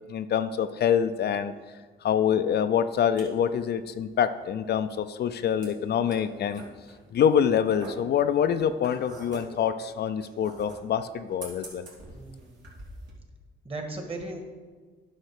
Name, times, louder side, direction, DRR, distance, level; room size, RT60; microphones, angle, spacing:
voice 1, 0.1-1.5 2.0-6.6 7.1-11.9, left 8 dB, 55° left, 10 dB, 0.5 m, -25 dB
sound 1, 2.7-13.1, right 2 dB, 70° right, 2.8 m, -47 dB
voice 2, 12.1-12.5 13.6-14.4, right 2 dB, 30° right, 4 dB, 1.8 m, -36 dB
10.5 x 5.7 x 4.9 m, 1.4 s
cardioid pair, 90°, 20 cm